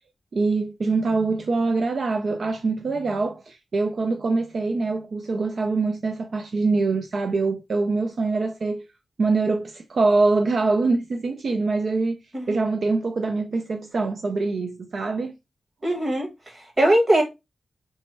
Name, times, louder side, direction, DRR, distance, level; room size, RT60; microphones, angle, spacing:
voice 1, 0.3-8.9 9.2-15.3 15.8-15.9, right 3 dB, 55° right, 0.3 m, -24 dB
voice 2, 15.8-17.2, right 1 dB, 25° right, 1.4 m, -21 dB
3.3 x 2.1 x 4.2 m
wide cardioid pair, 170°, 0 cm